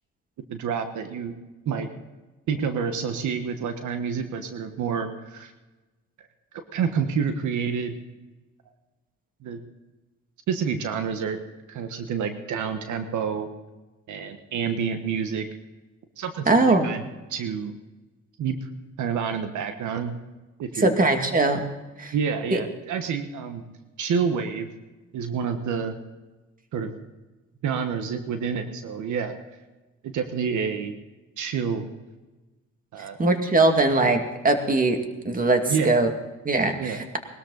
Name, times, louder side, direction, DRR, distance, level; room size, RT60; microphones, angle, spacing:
voice 1, 0.5-1.3 1.6-1.9 2.5-5.5 6.2-6.3 6.7-8.0 9.4-9.6 10.5-11.4 11.7-13.5 14.1-15.5 16.2-17.0 17.3-17.7 18.4-18.7 19.0-20.1 20.6-20.9 22.1-23.6 24.0-24.7 25.1-26.0 26.7-26.9 27.6-29.4 30.1-30.9 31.4-31.8 32.9-33.2 35.7-36.0 36.8-37.0, right 6 dB, 75° right, 7 dB, 1.4 m, -28 dB
voice 2, 16.5-16.9 20.8-21.6 22.0-22.1 22.5-22.6 33.2-35.0 35.2-36.1 36.4-37.2, right 2 dB, 30° right, 5 dB, 2.3 m, -21 dB
20.5 x 13.0 x 4.0 m, 1.2 s
cardioid pair, 90°, 30 cm